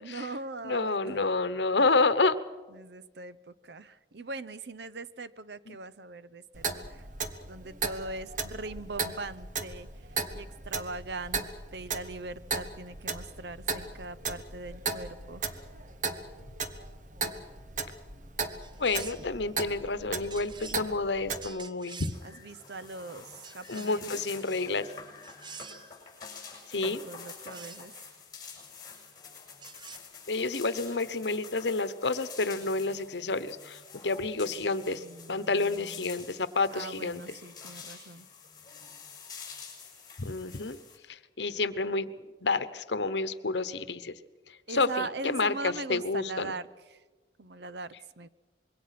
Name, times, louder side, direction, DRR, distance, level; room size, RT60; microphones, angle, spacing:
voice 1, 0.0-1.2 2.7-7.0 7.5-10.1 10.3-15.6 22.2-24.2 26.8-28.1 35.0-36.1 36.7-38.3 44.7-47.0 47.4-48.3, right 3 dB, 70° right, 16 dB, 0.8 m, -41 dB
voice 2, 0.6-2.4 18.8-22.2 23.7-24.9 26.7-27.0 30.3-37.2 40.2-40.8 41.1-42.1 42.4-44.2 44.7-46.5, left 3 dB, 75° left, 14 dB, 1.1 m, -29 dB
Clock, 6.5-21.5, right 4 dB, 45° right, 1.4 m, -37 dB
sound 1, 18.6-19.4 20.3-20.8 21.4-22.2 23.4-24.1 25.2-25.9 27.3-27.9 29.6-30.0, right 6 dB, 25° right, 0.7 m, -47 dB
sound 2, 22.1-41.0, left 6 dB, 20° left, 6.3 m, -48 dB
25.5 x 22.5 x 6.0 m, 1.3 s
head